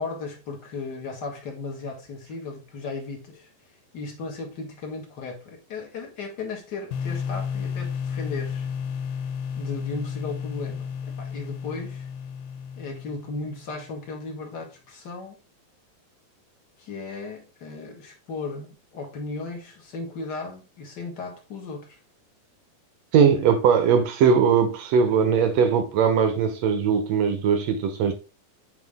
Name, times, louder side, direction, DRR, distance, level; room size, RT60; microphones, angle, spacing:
voice 1, 0.0-3.5 3.9-8.7 9.6-10.9 11.2-12.1 12.8-15.4 16.8-22.0 23.2-23.4, left 3 dB, 45° left, 1.5 m, -36 dB
sound 1, 6.9-13.7, left 7 dB, 85° left, 2.8 m, -32 dB
voice 2, 23.1-28.1, right 6 dB, 70° right, 1.6 m, -20 dB
8.3 x 4.7 x 3.5 m
omnidirectional pair, 4.1 m